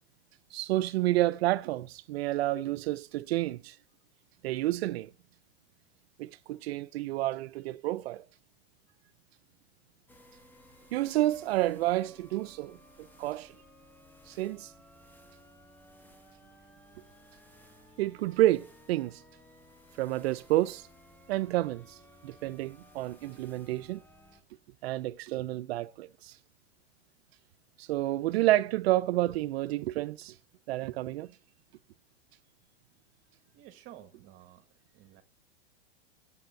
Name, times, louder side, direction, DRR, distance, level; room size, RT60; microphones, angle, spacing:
voice 1, 0.5-3.8 4.4-5.1 6.2-8.2 10.9-13.5 14.3-14.7 18.0-19.2 20.0-20.9 21.3-22.0 22.2-24.0 24.8-26.4 27.8-30.3 30.7-31.3, right 16 dB, 75° right, 0.5 m, -29 dB
sound 1, 10.1-24.4, equal, 5° left, 1.2 m, -57 dB
voice 2, 33.5-34.7 34.9-35.2, right 12 dB, 40° right, 1.1 m, -52 dB
7.9 x 7.8 x 7.7 m
supercardioid pair, 130°, 31 cm